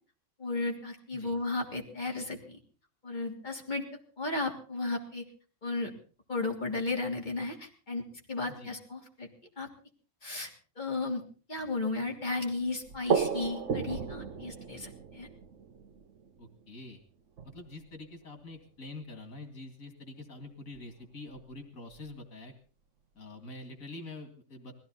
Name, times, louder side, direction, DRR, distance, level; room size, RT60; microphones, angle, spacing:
voice 1, 0.4-2.6 3.0-5.3 5.6-5.9 6.3-9.3 9.6-9.7 10.2-10.5 10.8-11.2 11.5-15.3, left 3 dB, 35° left, 0 dB, 3.4 m, -34 dB
sound 1, 11.6-16.6 17.4-17.9 18.6-18.7 18.9-19.0 20.2-20.3 20.7-20.8 21.3-21.4 21.9-22.0, right 6 dB, 65° right, 1.3 m, -35 dB
voice 2, 16.4-17.0 17.4-22.5 23.2-24.8, left 2 dB, 85° left, 6 dB, 2.6 m, -46 dB
21.0 x 16.0 x 4.0 m, 0.38 s
omnidirectional pair, 1.4 m